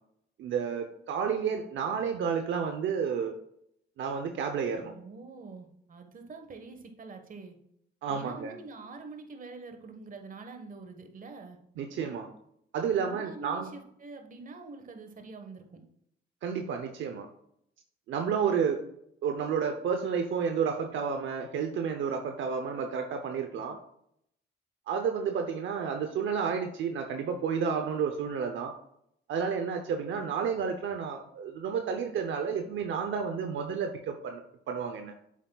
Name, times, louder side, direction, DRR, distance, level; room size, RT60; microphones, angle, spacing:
voice 1, 0.4-3.4 4.0-4.9 8.0-8.5 11.8-12.3 12.7-13.7 16.4-17.3 18.1-18.8 19.2-23.8 24.9-28.7 29.3-35.1, right 6 dB, 75° right, 5 dB, 0.8 m, -31 dB
voice 2, 4.8-7.6 8.1-11.6 12.9-15.6, right 3 dB, 45° right, 5 dB, 1.4 m, -45 dB
8.3 x 7.3 x 2.4 m, 0.73 s
cardioid pair, 90°, 20 cm